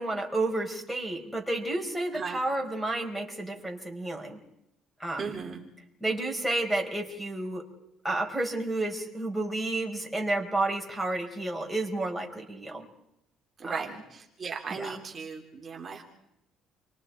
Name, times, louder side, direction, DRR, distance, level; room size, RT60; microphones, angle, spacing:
voice 1, 0.0-4.4 5.0-5.4 6.0-7.7 8.0-12.9 13.6-13.9 14.7-15.0, right 2 dB, ahead, 0 dB, 4.6 m, -31 dB
voice 2, 5.2-5.6 13.6-16.0, right 5 dB, 30° right, -1 dB, 3.2 m, -37 dB
30.0 x 23.5 x 4.6 m, 0.83 s
cardioid pair, 115°, 0 cm